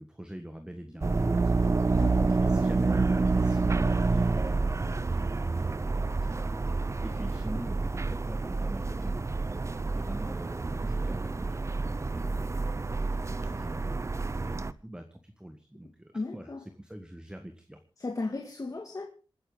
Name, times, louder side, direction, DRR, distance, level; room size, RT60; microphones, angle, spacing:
voice 1, 0.0-1.8 2.4-6.6 7.0-9.5 9.9-14.0 14.4-17.8, equal, 10° right, 1.5 m, -44 dB
sound 1, 1.0-14.7, right 3 dB, 30° right, 0.7 m, -28 dB
voice 2, 2.0-2.4 16.1-16.6 18.0-19.1, left 3 dB, 40° left, 2.1 m, -35 dB
27.5 x 10.0 x 3.9 m
wide cardioid pair, 115°, 9 cm